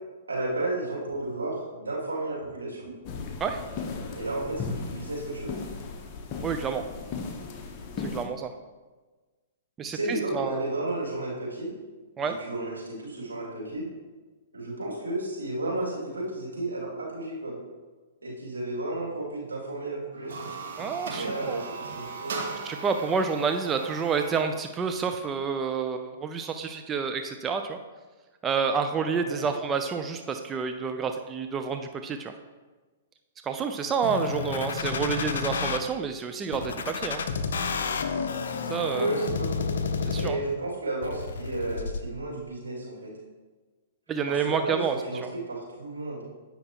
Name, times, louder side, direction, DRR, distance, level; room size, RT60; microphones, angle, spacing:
voice 1, 0.3-2.9 4.1-5.6 9.9-11.7 12.2-13.8 14.5-17.6 18.2-20.5 21.1-22.4 29.2-29.4 38.9-39.7 40.1-43.1 44.3-46.2, right 2 dB, 85° right, -5 dB, 2.4 m, -33 dB
sound 1, 3.1-8.3, left 4 dB, 35° left, 0.9 m, -36 dB
voice 2, 6.4-6.8 8.0-8.5 9.8-10.7 12.2-12.4 20.8-21.6 22.6-27.8 28.4-32.3 33.4-37.2 38.7-39.1 40.0-40.4 44.1-45.0, right 6 dB, 20° right, 6 dB, 0.4 m, -29 dB
sound 2, 20.1-24.5, right 4 dB, 65° right, 1.1 m, -38 dB
sound 3, 34.0-35.8 36.5-40.5 41.0-42.0, left 5 dB, 70° left, 0.5 m, -30 dB
8.6 x 5.7 x 2.9 m, 1.3 s
hypercardioid pair, 120°, 0 cm